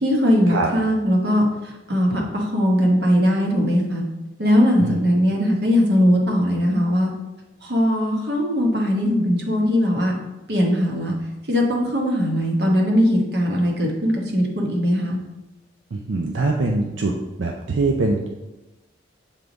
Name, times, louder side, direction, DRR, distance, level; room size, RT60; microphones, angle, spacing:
voice 1, 0.0-4.0 4.4-7.1 7.6-10.1 10.5-11.1 11.5-15.2, equal, 60° right, 0 dB, 1.1 m, -20 dB
voice 2, 15.9-17.1 17.4-18.3, right 3 dB, 80° right, 1 dB, 0.5 m, -23 dB
7.4 x 3.5 x 3.9 m, 1.1 s
head